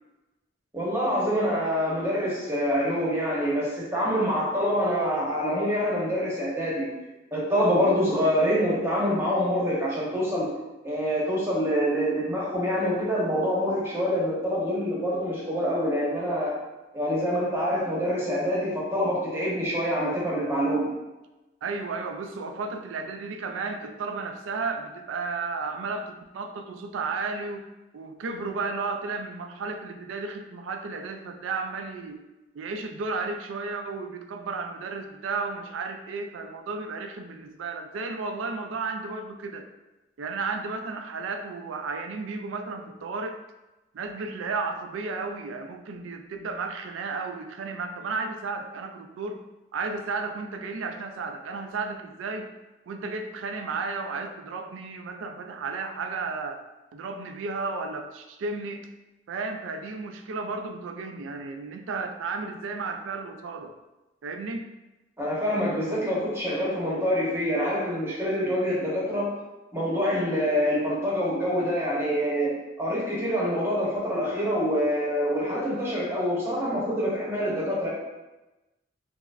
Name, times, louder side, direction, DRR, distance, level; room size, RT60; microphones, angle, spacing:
voice 1, 0.7-6.9 7.3-10.5 10.8-16.5 16.9-20.8 65.2-69.3 69.7-72.5 72.8-77.9, equal, 15° right, -6 dB, 0.9 m, -26 dB
voice 2, 21.6-27.6 27.9-32.2 32.5-39.7 40.2-43.4 43.9-49.4 49.7-52.5 52.9-56.6 56.9-58.9 59.3-63.8 64.2-64.7, right 4 dB, 85° right, 6 dB, 0.3 m, -33 dB
4.3 x 2.1 x 2.4 m, 1.1 s
head